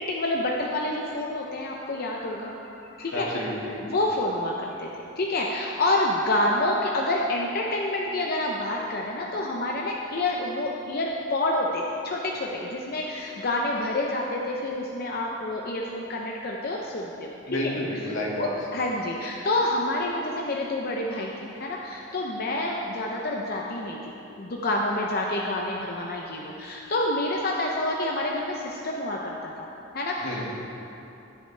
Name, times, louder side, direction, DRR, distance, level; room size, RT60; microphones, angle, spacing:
voice 1, 0.0-3.3 3.8-17.6 18.4-29.7 29.9-30.5, left 1 dB, 50° left, -1 dB, 0.7 m, -28 dB
voice 2, 3.1-3.8 17.5-18.5 30.2-30.5, left 1 dB, 85° left, -3 dB, 2.0 m, -30 dB
15.0 x 8.1 x 3.4 m, 2.8 s
head